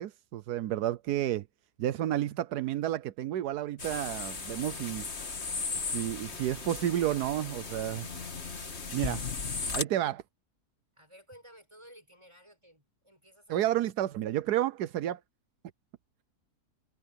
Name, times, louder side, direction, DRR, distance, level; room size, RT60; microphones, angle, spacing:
voice 1, 0.0-1.5 1.8-5.1 5.9-8.1 8.9-9.3 9.7-10.2 13.5-15.2, right 12 dB, 90° right, 1.3 m, -31 dB
sound 1, 3.8-9.8, left 4 dB, 45° left, 2.0 m, -36 dB
voice 2, 11.0-13.6, equal, 15° right, 7.1 m, -55 dB
omnidirectional pair, 1.7 m